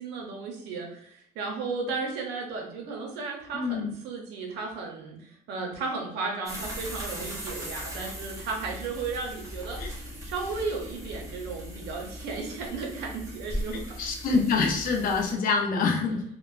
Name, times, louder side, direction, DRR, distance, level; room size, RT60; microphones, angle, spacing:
voice 1, 0.0-10.0 10.2-14.0, right 4 dB, 90° right, 1 dB, 0.6 m, -34 dB
voice 2, 3.5-3.9 9.8-9.9 14.0-16.4, left 4 dB, 55° left, 3 dB, 0.6 m, -26 dB
sound 1, 6.5-15.3, equal, 20° right, 0.8 m, -39 dB
2.9 x 2.0 x 2.4 m, 0.68 s
cardioid pair, 110°, 17 cm